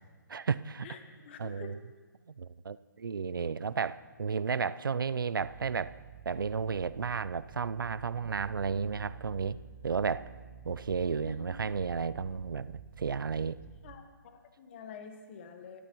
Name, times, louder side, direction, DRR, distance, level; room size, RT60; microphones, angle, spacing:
voice 1, 0.3-0.9 1.4-1.8 2.4-6.0 6.3-9.6 9.8-10.3 10.6-13.6, right 5 dB, 85° right, 16 dB, 0.5 m, -33 dB
voice 2, 0.8-1.7 11.1-11.5 13.8-15.8, left 6 dB, 35° left, 7 dB, 1.3 m, -48 dB
sound 1, 5.4-14.0, right 9 dB, 35° right, 0.6 m, -50 dB
23.5 x 12.5 x 3.0 m, 1.5 s
hypercardioid pair, 155°, 11 cm